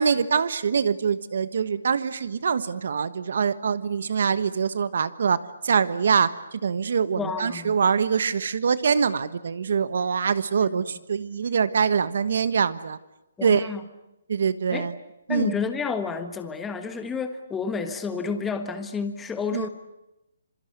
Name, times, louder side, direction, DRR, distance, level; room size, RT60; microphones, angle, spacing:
voice 1, 0.0-13.0 13.4-13.7 14.3-14.9 15.3-15.5 19.5-19.7, right 6 dB, 60° right, 15 dB, 1.3 m, -24 dB
voice 2, 7.2-7.7 10.6-10.8 13.4-13.8 14.7-14.9 15.3-19.7, left 5 dB, 5° left, 8 dB, 1.4 m, -30 dB
26.5 x 23.5 x 8.1 m, 0.90 s
hypercardioid pair, 170°, 0 cm